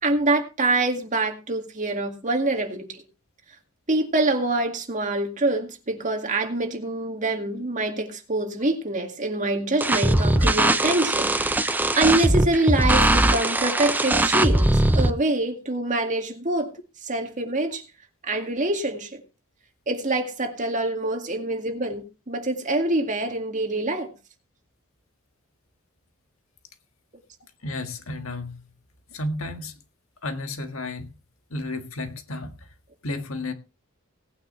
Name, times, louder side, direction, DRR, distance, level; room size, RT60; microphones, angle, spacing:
voice 1, 0.0-3.0 3.9-16.7 17.0-17.8 18.2-19.2 19.9-24.1, right 2 dB, 35° right, 2.1 m, -25 dB
sound 1, 9.8-15.1, right 1 dB, 10° right, 0.6 m, -20 dB
voice 2, 27.6-28.6 29.1-29.8 30.2-31.1 31.5-32.7 33.0-33.5, left 2 dB, 70° left, 1.8 m, -32 dB
18.0 x 9.3 x 3.2 m
head